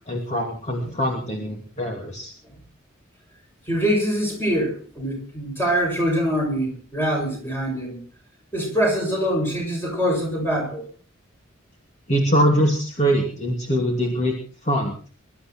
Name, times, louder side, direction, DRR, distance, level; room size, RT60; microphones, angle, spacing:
voice 1, 0.1-2.3 12.1-14.3 14.6-14.9, equal, 35° left, 0 dB, 2.8 m, -23 dB
voice 2, 3.7-8.0 8.5-10.9, equal, 10° left, 0 dB, 7.2 m, -24 dB
23.5 x 13.0 x 4.5 m, 0.41 s
head